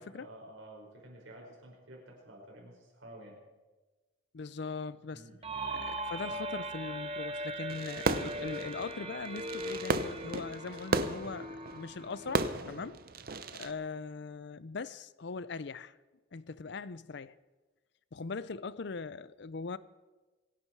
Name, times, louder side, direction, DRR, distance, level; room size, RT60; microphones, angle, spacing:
voice 1, 0.0-3.4 5.1-5.6, right 1 dB, 80° right, 5.3 m, -51 dB
voice 2, 4.3-5.2 5.7-11.5 11.7-13.0 13.5-16.0 16.3-17.4 18.1-19.8, left 4 dB, 60° left, 0.5 m, -40 dB
sound 1, 5.4-13.0, right 1 dB, 30° right, 1.3 m, -40 dB
Fireworks, 7.7-13.7, right 3 dB, 50° right, 0.7 m, -35 dB
26.5 x 11.0 x 4.7 m
head